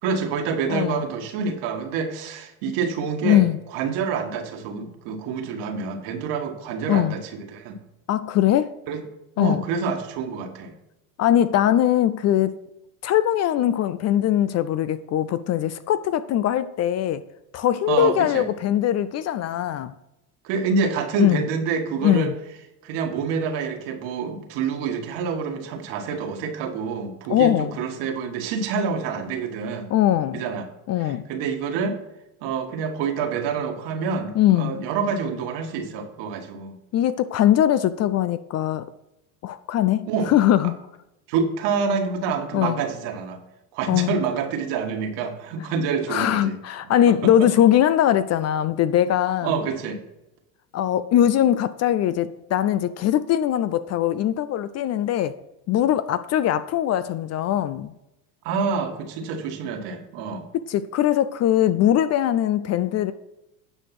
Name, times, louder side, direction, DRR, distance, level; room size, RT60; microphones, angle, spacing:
voice 1, 0.0-3.4 3.7-7.7 8.9-9.0 9.4-10.8 17.9-18.5 20.4-22.3 22.8-29.9 30.3-30.7 31.0-32.0 32.4-36.8 40.1-40.3 40.6-40.7 41.3-43.4 43.7-46.6 47.1-47.5 49.4-50.0 58.4-60.5, right 5 dB, 65° right, 1.8 m, -27 dB
voice 2, 0.7-1.0 3.2-3.6 6.9-7.1 8.1-8.7 9.4-9.6 11.2-12.6 13.0-17.2 17.5-19.9 21.2-21.4 22.0-22.3 27.3-27.7 29.9-30.4 30.9-31.3 34.4-34.7 36.9-38.8 39.4-40.7 42.5-42.8 43.9-44.1 46.1-49.5 50.7-55.3 55.7-57.9 60.7-63.1, left 11 dB, 35° left, 0.4 m, -21 dB
9.8 x 5.2 x 5.9 m
supercardioid pair, 105°, 45 cm